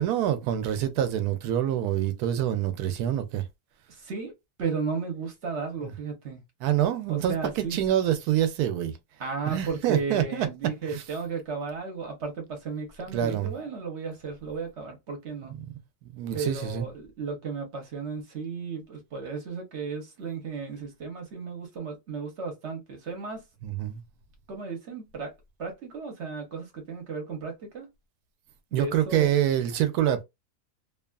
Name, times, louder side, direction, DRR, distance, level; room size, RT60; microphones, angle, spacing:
voice 1, 0.0-3.4 6.6-8.9 9.5-10.5 10.9-11.0 13.1-13.5 16.1-16.9 23.6-24.0 28.7-30.2, right 11 dB, 90° right, 1.1 m, -26 dB
voice 2, 3.9-4.3 4.6-6.4 7.1-7.8 9.2-15.5 16.3-23.4 24.5-25.3 25.6-27.9 28.7-29.3, right 5 dB, 55° right, 1.1 m, -34 dB
2.8 x 2.3 x 2.2 m
omnidirectional pair, 1.6 m